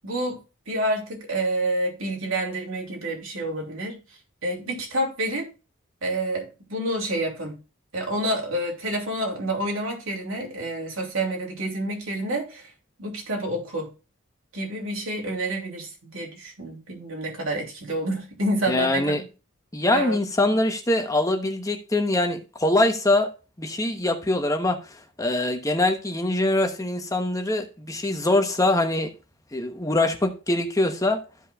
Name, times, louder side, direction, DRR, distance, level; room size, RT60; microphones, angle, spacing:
voice 1, 0.0-0.4 0.7-4.0 4.4-5.5 6.0-7.6 7.9-12.7 13.0-13.9 14.5-19.1 19.9-20.6, right 1 dB, 90° right, 3.0 m, -28 dB
voice 2, 18.7-19.2 19.7-23.3 23.6-29.1 29.5-31.2, left 2 dB, 15° left, 1.0 m, -23 dB
14.5 x 5.4 x 2.4 m
head